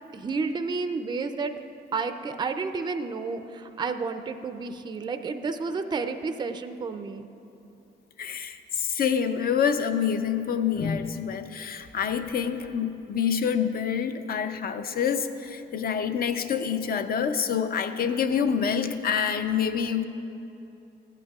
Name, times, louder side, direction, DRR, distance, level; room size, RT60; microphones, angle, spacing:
voice 1, 0.1-1.5 1.9-7.3, right 4 dB, 20° right, 8 dB, 0.4 m, -31 dB
voice 2, 8.2-20.0, left 7 dB, 50° left, 9 dB, 0.6 m, -27 dB
15.0 x 9.1 x 2.3 m, 2.8 s
cardioid pair, 90°, 20 cm